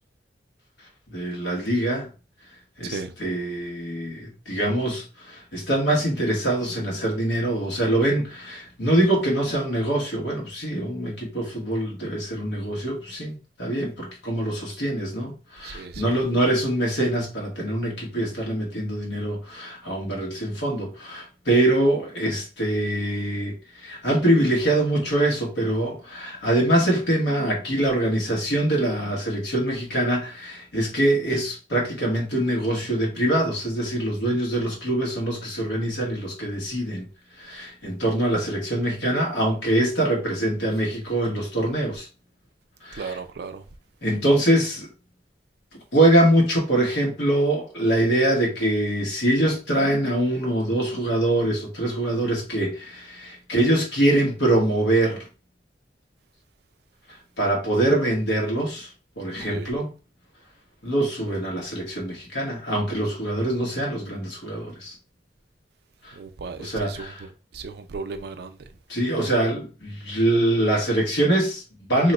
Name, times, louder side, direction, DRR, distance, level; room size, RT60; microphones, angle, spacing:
voice 1, 1.1-2.1 2.8-37.1 37.4-42.1 42.8-43.2 44.0-44.9 45.9-55.3 57.4-58.9 59.2-59.9 60.8-64.9 66.0-66.1 66.6-67.2 68.9-72.1, right 1 dB, 80° left, 1.4 m, -24 dB
voice 2, 15.6-16.0 43.0-43.6 59.4-59.7 66.1-68.6, right 4 dB, 65° right, 0.4 m, -36 dB
2.9 x 2.2 x 4.0 m
head